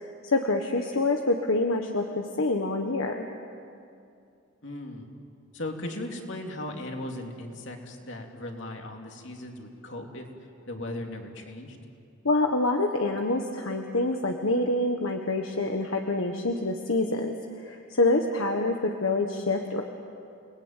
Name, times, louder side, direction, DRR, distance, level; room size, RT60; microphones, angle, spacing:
voice 1, 0.2-3.2 12.2-17.3 17.6-19.8, left 2 dB, 75° left, 3 dB, 1.5 m, -26 dB
voice 2, 4.6-5.1 5.5-10.3 10.7-11.8, left 1 dB, 60° left, 2 dB, 3.0 m, -37 dB
30.0 x 20.0 x 9.1 m, 2.5 s
head